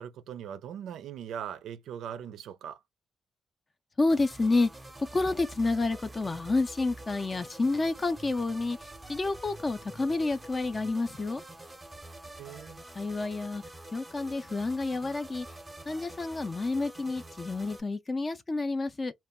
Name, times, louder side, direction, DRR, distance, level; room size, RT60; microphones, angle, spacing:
voice 1, 0.0-2.8 12.4-12.8, right 9 dB, 85° right, 0.4 m, -40 dB
voice 2, 4.0-4.7 5.1-11.4 13.0-13.6 13.9-15.5 15.9-19.1, left 3 dB, 30° left, 0.4 m, -29 dB
sound 1, 4.1-17.8, right 1 dB, 10° right, 0.7 m, -47 dB
2.2 x 2.1 x 3.5 m
cardioid pair, 80°, 0 cm